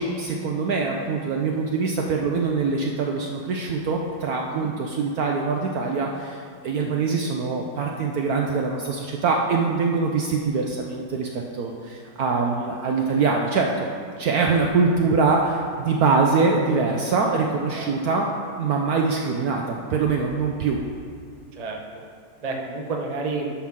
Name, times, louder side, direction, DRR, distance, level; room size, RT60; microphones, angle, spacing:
voice 1, 0.0-13.9 14.2-18.3 18.6-20.8, right 4 dB, 70° right, 1 dB, 0.9 m, -23 dB
voice 2, 12.3-12.7 17.7-18.0 21.5-22.0 22.4-23.5, right 3 dB, 40° right, 0 dB, 0.5 m, -31 dB
11.0 x 5.9 x 3.6 m, 2.2 s
omnidirectional pair, 2.1 m